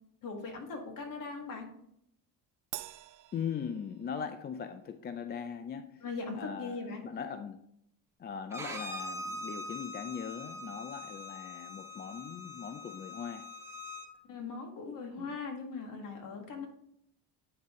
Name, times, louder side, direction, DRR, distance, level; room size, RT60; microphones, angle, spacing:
voice 1, 0.2-1.7 6.0-7.0 14.3-16.7, left 4 dB, 55° left, 3 dB, 1.9 m, -40 dB
Crash cymbal, 2.7-4.4, right 15 dB, 50° right, 0.5 m, -46 dB
voice 2, 3.3-6.0 6.3-7.6 8.2-13.5 15.1-15.4, left 7 dB, 25° left, 9 dB, 0.4 m, -40 dB
Bowed string instrument, 8.5-14.1, left 2 dB, 5° right, 1.0 m, -43 dB
9.2 x 3.9 x 3.7 m, 0.72 s
cardioid pair, 105°, 39 cm